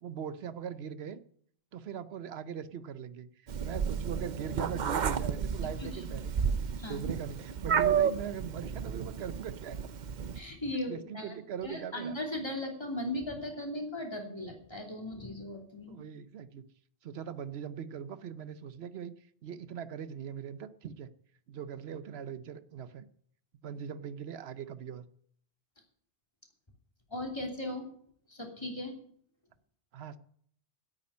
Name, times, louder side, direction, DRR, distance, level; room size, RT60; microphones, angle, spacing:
voice 1, 0.0-1.2 1.7-6.5 6.8-9.9 10.9-12.2 15.9-16.7 17.0-19.1 19.4-21.1 21.5-23.0 23.6-25.0 29.9-30.2, right 8 dB, 85° right, 14 dB, 1.0 m, -41 dB
Meow, 3.5-10.4, right 7 dB, 50° right, 0.8 m, -32 dB
voice 2, 5.6-6.0 6.8-7.0 10.3-11.3 11.6-16.0 27.1-27.9 28.3-28.9, left 1 dB, 25° left, 1 dB, 2.9 m, -37 dB
10.0 x 8.6 x 9.5 m, 0.63 s
omnidirectional pair, 1.0 m